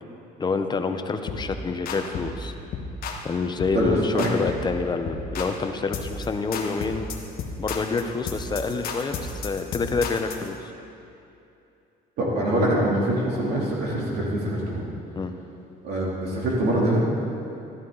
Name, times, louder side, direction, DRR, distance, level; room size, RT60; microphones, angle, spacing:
voice 1, 0.4-2.5 3.2-7.1 7.6-10.7 15.1-15.3, left 4 dB, 25° left, 7 dB, 0.7 m, -27 dB
sound 1, 1.3-1.5 1.9-2.4 2.7-3.3 3.6-3.8 4.2-4.7 5.1-5.6 5.9-6.3 6.5-10.5, left 4 dB, 60° left, 1.3 m, -33 dB
voice 2, 3.7-4.3 12.2-14.9 15.8-17.0, right 1 dB, 70° right, -5 dB, 3.0 m, -24 dB
12.5 x 11.0 x 4.0 m, 2.7 s
cardioid pair, 110°, 17 cm